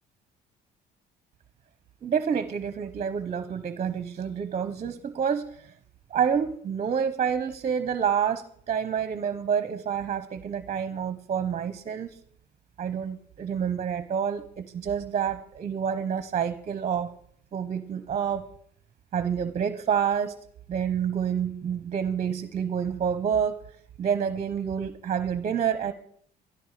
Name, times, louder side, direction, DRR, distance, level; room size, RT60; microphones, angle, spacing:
voice 1, 2.0-5.7 6.1-12.2 12.8-17.1 17.5-18.4 19.1-20.4 20.7-23.6 24.0-25.9, right 7 dB, 40° right, 13 dB, 0.8 m, -28 dB
12.5 x 12.0 x 4.9 m, 0.64 s
cardioid pair, 110°, 17 cm